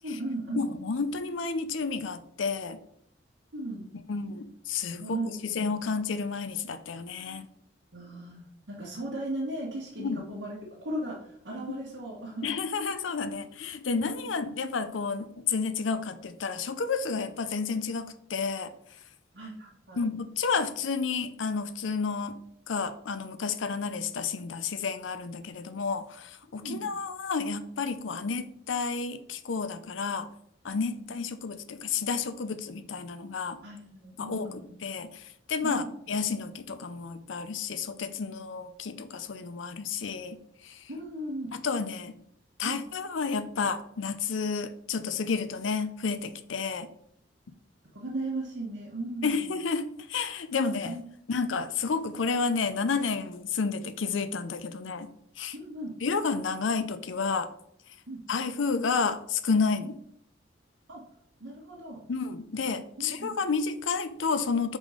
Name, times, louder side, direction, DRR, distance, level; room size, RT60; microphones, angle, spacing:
voice 1, 0.0-0.7 3.5-3.9 5.0-5.8 7.9-12.5 14.1-14.3 19.3-20.0 26.5-26.8 33.6-34.8 35.6-35.9 40.9-41.5 42.6-42.8 47.9-49.4 50.8-51.0 55.5-55.9 58.1-58.2 59.8-59.9 60.9-61.0 61.4-62.0 63.0-63.3, right 1 dB, 75° right, -7 dB, 1.4 m, -37 dB
voice 2, 0.5-2.8 4.1-7.5 10.0-10.2 12.4-18.7 20.0-22.4 22.7-30.3 30.6-33.6 34.2-34.5 34.8-35.2 35.5-40.4 40.6-40.8 41.5-42.1 42.6-46.9 49.2-51.0 51.3-55.1 55.4-55.5 56.0-57.5 58.3-60.0 62.1-64.8, left 5 dB, 90° left, 11 dB, 0.6 m, -31 dB
5.3 x 3.8 x 4.9 m, 0.69 s
head